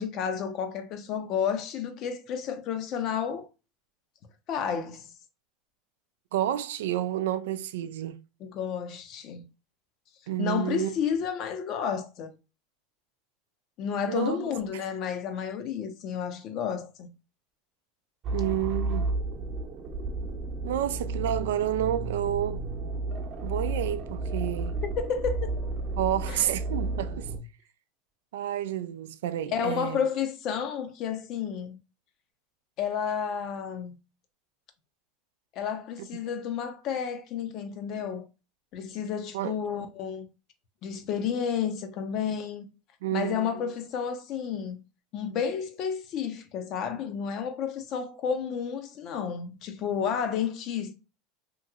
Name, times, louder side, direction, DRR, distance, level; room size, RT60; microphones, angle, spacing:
voice 1, 0.0-3.5 4.5-5.1 8.4-9.4 10.4-12.3 13.8-17.1 24.8-25.5 26.3-26.5 29.5-31.8 32.8-33.9 35.6-38.2 38.7-40.3 40.8-42.6 43.1-44.8 45.1-50.9, left 7 dB, 50° left, 0.6 m, -31 dB
voice 2, 6.3-8.2 10.3-10.9 14.1-14.8 18.3-19.1 20.6-22.6 23.4-24.8 26.0-27.3 28.3-30.0 36.0-36.1 39.3-39.5 43.0-43.5, right 12 dB, 85° right, 0.3 m, -30 dB
sound 1, 18.2-27.4, right 2 dB, 40° right, 0.8 m, -32 dB
3.0 x 2.8 x 2.3 m
supercardioid pair, 115°, 0 cm